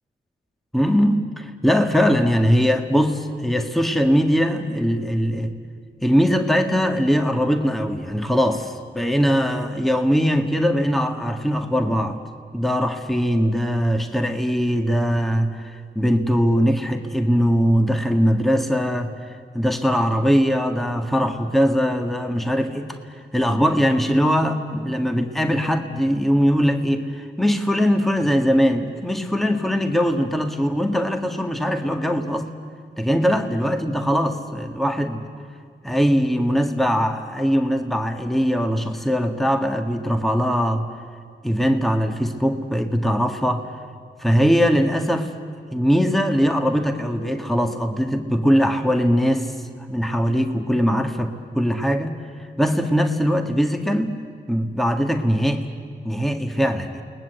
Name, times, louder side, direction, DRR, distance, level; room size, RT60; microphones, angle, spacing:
voice 1, 0.7-5.5 6.0-12.2 12.5-32.5 33.0-35.2 35.8-40.9 41.4-43.7 44.2-45.3 45.7-49.6 49.9-52.2 52.6-54.2 54.5-55.7 56.0-57.0, equal, ahead, 5 dB, 1.8 m, -21 dB
29.0 x 20.0 x 8.0 m, 2.1 s
cardioid pair, 50°, 21 cm